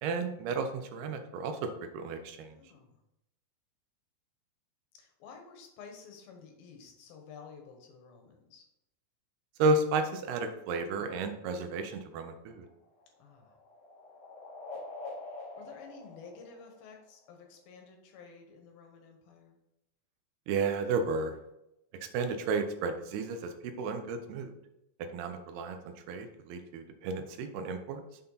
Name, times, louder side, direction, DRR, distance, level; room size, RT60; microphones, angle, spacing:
voice 1, 0.0-2.6 9.6-12.7 20.5-21.4 22.0-24.5 25.1-28.0, right 3 dB, 85° right, 7 dB, 2.8 m, -32 dB
voice 2, 2.5-3.0 4.9-8.6 13.2-13.6 15.5-19.6, left 5 dB, 75° left, 2 dB, 2.9 m, -52 dB
sound 1, 12.5-17.3, left 2 dB, 55° left, 2.2 m, -46 dB
7.0 x 5.8 x 4.0 m, 0.87 s
omnidirectional pair, 4.5 m